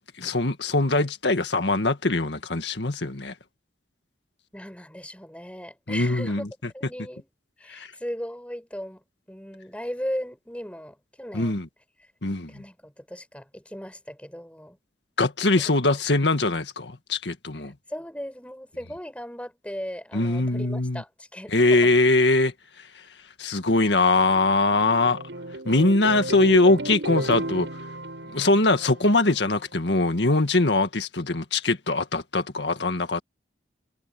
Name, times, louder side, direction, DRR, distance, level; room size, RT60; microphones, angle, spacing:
voice 1, 0.2-3.3 5.9-6.5 7.7-7.9 11.3-11.7 12.2-12.6 15.2-17.7 20.1-21.0 21.5-22.5 23.4-25.2 25.7-27.7 28.3-33.2, left 2 dB, 75° left, 1.8 m, -22 dB
voice 2, 4.5-6.5 6.7-7.3 7.6-9.0 9.3-11.6 12.5-14.8 15.6-15.7 17.6-21.9, equal, 5° left, 7.4 m, -37 dB
sound 1, 24.0-29.4, right 1 dB, 85° right, 7.7 m, -34 dB
head